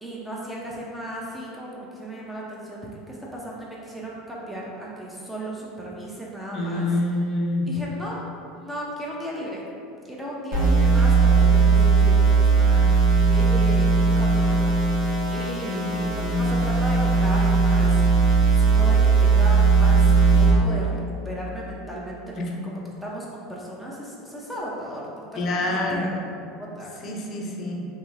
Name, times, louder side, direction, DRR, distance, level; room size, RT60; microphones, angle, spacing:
voice 1, 0.0-6.9 7.7-8.2 8.5-9.6 10.1-12.9 13.3-14.7 15.3-18.3 18.6-21.0 21.2-22.4 22.6-25.0 25.5-26.1 26.6-26.9, right 1 dB, 5° right, -5 dB, 0.5 m, -35 dB
voice 2, 6.5-7.7 15.6-16.6 22.4-22.5 25.4-26.2 27.0-27.9, left 2 dB, 45° left, 0 dB, 0.5 m, -27 dB
sound 1, 10.5-20.5, right 4 dB, 65° right, 1.1 m, -18 dB
2.9 x 2.7 x 2.4 m, 2.4 s
hypercardioid pair, 90°, 0 cm